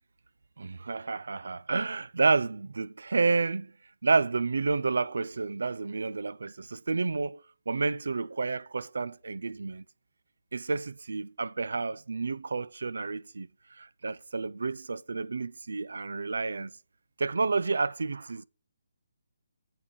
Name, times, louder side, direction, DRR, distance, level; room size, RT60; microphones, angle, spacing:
voice 1, 0.6-3.7 4.0-9.8 10.5-16.7 17.2-18.4, right 4 dB, 75° right, 0.4 m, -30 dB
9.0 x 4.8 x 5.2 m
figure-of-eight pair, 145°, 0 cm